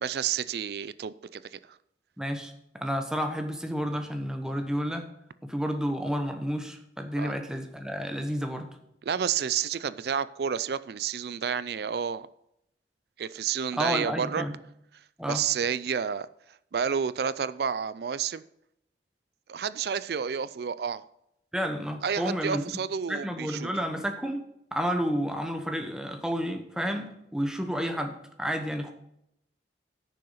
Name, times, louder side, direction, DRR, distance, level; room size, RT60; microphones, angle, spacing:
voice 1, 0.0-1.6 7.2-7.3 9.0-12.3 13.2-14.4 15.3-16.3 16.7-18.4 19.5-21.0 22.0-23.7, right 7 dB, 65° right, 0.4 m, -30 dB
voice 2, 2.2-5.1 5.4-8.7 13.8-14.6 15.2-15.4 21.5-22.6 23.1-24.4 24.7-28.9, equal, 5° right, 1.0 m, -31 dB
10.5 x 6.6 x 5.7 m
head